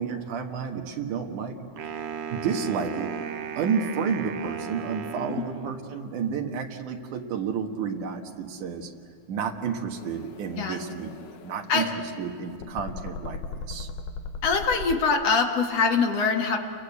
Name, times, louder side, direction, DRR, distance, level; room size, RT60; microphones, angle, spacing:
voice 1, 0.0-1.6 2.3-3.1 3.6-8.9 9.3-11.1 11.4-11.9 12.2-13.9, right 6 dB, 90° right, 2 dB, 3.0 m, -31 dB
Wind instrument woodwind instrument, 1.8-6.0, right 7 dB, 60° right, 1.8 m, -36 dB
sound 1, 9.9-15.0, left 4 dB, 85° left, 2.6 m, -39 dB
voice 2, 14.4-16.6, left 5 dB, 60° left, 3 dB, 2.8 m, -23 dB
29.5 x 22.0 x 8.3 m, 2.3 s
omnidirectional pair, 3.4 m